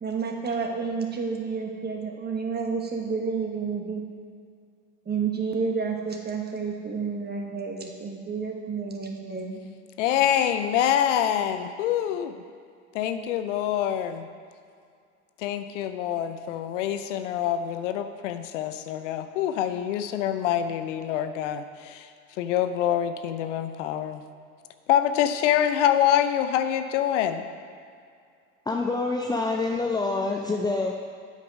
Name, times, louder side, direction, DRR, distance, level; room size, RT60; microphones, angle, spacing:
voice 1, 0.0-4.0 5.1-9.6, right 5 dB, 25° right, 2 dB, 1.3 m, -30 dB
voice 2, 10.0-12.4 12.9-14.3 15.4-22.1 22.4-24.2 24.9-27.5, left 10 dB, 75° left, 9 dB, 0.6 m, -25 dB
voice 3, 28.7-30.9, left 3 dB, 10° left, 1 dB, 0.5 m, -26 dB
8.4 x 5.1 x 5.3 m, 2.2 s
hypercardioid pair, 65°, 37 cm